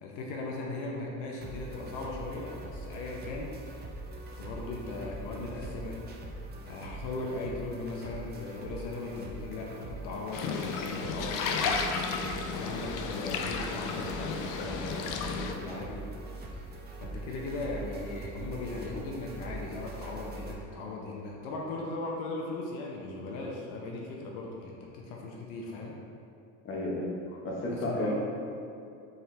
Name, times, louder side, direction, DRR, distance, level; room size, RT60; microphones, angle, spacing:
voice 1, 0.0-3.5 4.4-6.0 6.6-11.8 12.5-16.0 16.6-16.7 17.0-25.9 27.7-28.1, left 2 dB, 75° left, -2 dB, 0.8 m, -38 dB
sound 1, 1.4-20.5, right 2 dB, 25° right, 0.5 m, -43 dB
sound 2, 10.3-15.5, left 5 dB, 50° left, 0.5 m, -33 dB
voice 2, 26.6-27.1 27.4-28.1, left 1 dB, 30° left, -4 dB, 1.0 m, -32 dB
4.3 x 3.7 x 3.2 m, 2.7 s
supercardioid pair, 120°, 41 cm